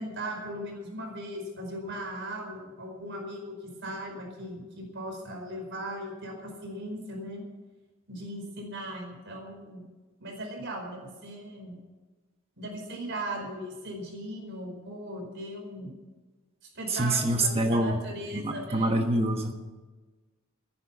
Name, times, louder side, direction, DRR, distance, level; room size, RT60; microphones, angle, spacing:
voice 1, 0.0-7.4 8.1-9.9 10.2-11.8 12.6-15.9 16.6-19.0, right 1 dB, 60° right, 1 dB, 4.8 m, -38 dB
voice 2, 16.9-18.0 18.3-19.5, right 1 dB, 30° right, 4 dB, 1.3 m, -26 dB
14.5 x 10.5 x 7.3 m, 1.3 s
head